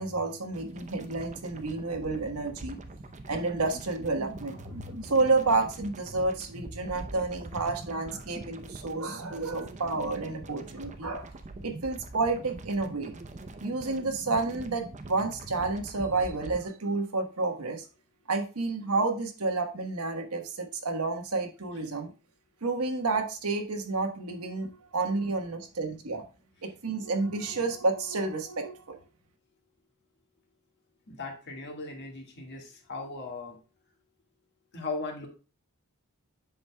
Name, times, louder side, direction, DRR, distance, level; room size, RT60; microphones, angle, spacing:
voice 1, 0.0-2.8 3.3-11.3 11.6-13.2 13.6-17.9 18.3-22.1 22.6-26.2 26.6-29.0, right 3 dB, 80° right, 4 dB, 1.3 m, -30 dB
sound 1, 0.5-16.6, right 2 dB, 30° right, 0.6 m, -43 dB
voice 2, 31.1-33.6 34.7-35.3, left 3 dB, 50° left, 2 dB, 1.7 m, -38 dB
8.0 x 6.2 x 2.2 m, 0.34 s
head